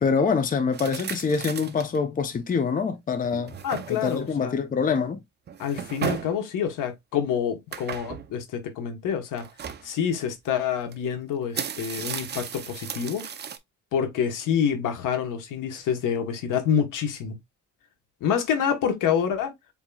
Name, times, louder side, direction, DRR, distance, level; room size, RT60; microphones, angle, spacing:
voice 1, 0.0-3.5 3.9-5.2, left 5 dB, 25° left, 0.7 m, -25 dB
sound 1, 0.7-2.0 2.5-2.6 3.2-4.3 5.5-6.4 7.7-8.3 9.4-9.9 10.9-11.0 11.4-13.6, right 8 dB, 35° right, 0.6 m, -35 dB
voice 2, 3.6-4.6 5.6-9.4 9.8-13.2 13.9-17.4 18.2-19.5, left 8 dB, 75° left, 1.3 m, -27 dB
7.2 x 2.9 x 2.3 m
cardioid pair, 125°, 32 cm